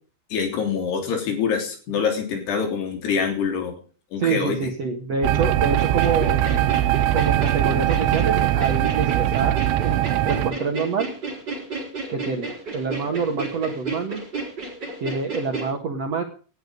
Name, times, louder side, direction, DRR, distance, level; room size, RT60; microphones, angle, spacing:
voice 1, 0.3-3.8 4.1-4.7, left 6 dB, 65° left, 5 dB, 5.3 m, -25 dB
voice 2, 4.2-6.4 7.1-11.1 12.1-14.2 15.0-16.2, right 4 dB, 55° right, 3 dB, 1.9 m, -26 dB
sound 1, 5.2-10.5, right 13 dB, 85° right, 3.2 m, -21 dB
sound 2, 5.8-15.7, right 3 dB, 25° right, 4.6 m, -33 dB
18.5 x 11.5 x 5.3 m, 0.40 s
omnidirectional pair, 5.3 m